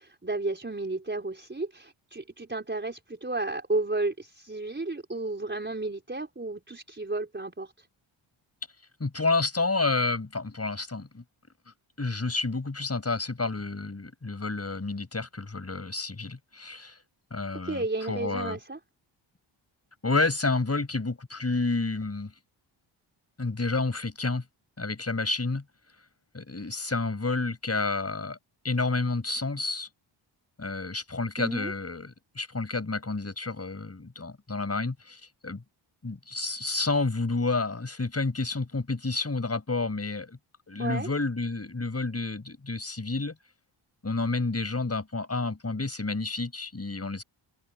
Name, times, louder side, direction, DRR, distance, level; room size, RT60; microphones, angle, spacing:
voice 1, 0.0-7.9 17.6-18.8 31.4-31.7 40.8-41.1, right 2 dB, 20° right, 4.7 m, -32 dB
voice 2, 9.0-11.2 12.0-17.0 17.3-18.6 20.0-22.3 23.4-24.4 24.8-25.6 26.3-28.4 28.6-29.9 30.6-35.6 36.0-40.4 40.7-43.3 44.0-47.2, left 3 dB, 30° left, 6.1 m, -30 dB
open air
cardioid pair, 70°, 50 cm